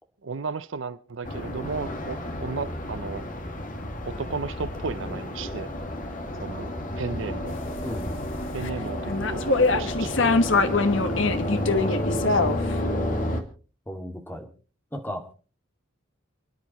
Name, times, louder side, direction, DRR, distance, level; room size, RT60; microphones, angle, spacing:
voice 1, 0.2-3.2 4.0-5.7 6.4-6.7 7.0-7.6 8.5-9.4 9.7-11.5 11.9-12.6, right 4 dB, 65° right, 0.6 m, -35 dB
sound 1, 1.2-13.4, left 1 dB, 40° left, 2.1 m, -31 dB
sound 2, 7.5-8.7 9.1-12.7, left 3 dB, 65° left, 1.3 m, -24 dB
voice 2, 7.8-8.2 12.1-12.6 13.9-14.5 14.9-15.2, equal, 10° left, 2.1 m, -35 dB
29.0 x 10.5 x 3.0 m
head